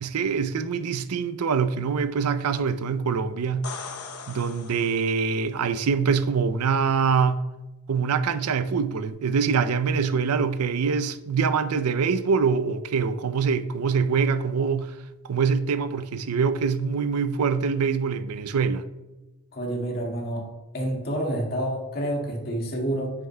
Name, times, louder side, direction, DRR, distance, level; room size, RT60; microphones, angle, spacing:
voice 1, 0.0-3.7 4.3-7.4 7.9-15.0 15.2-18.8, right 5 dB, 80° right, 0.5 m, -24 dB
sound 1, 3.4-5.4 9.1-9.2, left 5 dB, 70° left, 0.8 m, -39 dB
voice 2, 19.5-20.5 20.7-23.1, right 1 dB, 45° left, 1.8 m, -28 dB
9.1 x 9.0 x 2.2 m
head